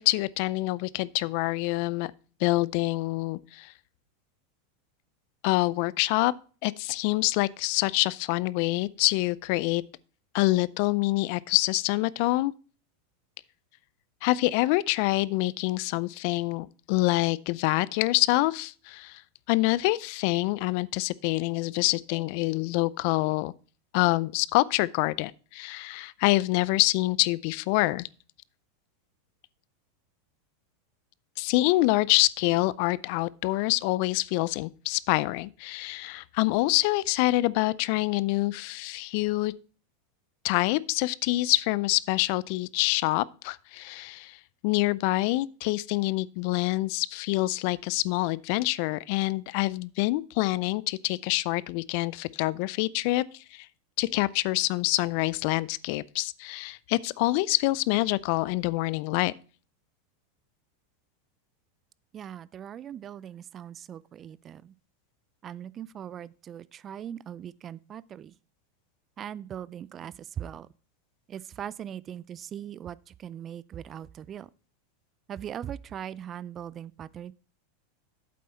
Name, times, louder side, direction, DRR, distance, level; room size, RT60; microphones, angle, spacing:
voice 1, 0.0-2.1 2.4-3.7 5.4-6.3 6.6-9.8 10.3-12.5 14.2-19.2 19.5-23.5 23.9-28.1 31.4-39.5 40.4-44.4 44.6-53.2 53.5-53.7 54.0-59.3, left 20 dB, 60° left, 0.4 m, -26 dB
voice 2, 62.1-64.7 65.4-68.3 69.2-70.7 71.3-74.5 75.3-77.3, right 9 dB, 35° right, 0.4 m, -40 dB
8.5 x 7.5 x 4.3 m
hypercardioid pair, 105°, 0 cm